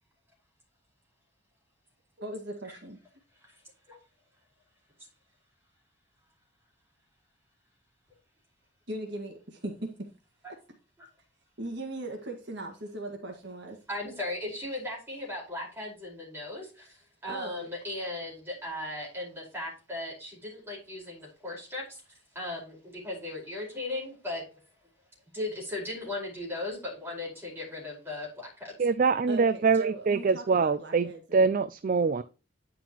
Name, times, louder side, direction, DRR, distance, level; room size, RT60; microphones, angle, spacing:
voice 1, 2.2-3.0 8.9-10.1 11.6-13.8 17.3-17.7 29.3-31.5, right 2 dB, 55° right, 2 dB, 1.8 m, -39 dB
voice 2, 13.9-22.0 22.3-24.4 25.3-28.7, left 2 dB, 10° right, -2 dB, 4.7 m, -37 dB
voice 3, 28.8-32.2, right 5 dB, 40° right, 13 dB, 0.3 m, -24 dB
10.0 x 6.0 x 3.0 m, 0.33 s
head